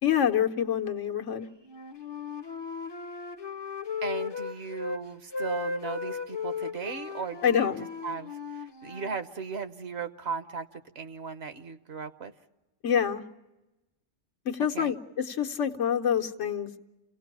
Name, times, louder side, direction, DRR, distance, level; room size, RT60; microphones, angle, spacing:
voice 1, 0.0-1.5 7.4-7.8 12.8-13.2 14.4-16.8, left 8 dB, 85° left, 4 dB, 1.4 m, -26 dB
Wind instrument woodwind instrument, 1.6-5.0 5.3-9.2, left 5 dB, 25° left, 0.6 m, -36 dB
voice 2, 4.0-12.3 14.7-14.9, right 5 dB, 60° right, 9 dB, 1.2 m, -37 dB
29.0 x 17.5 x 6.1 m, 1.0 s
omnidirectional pair, 1.2 m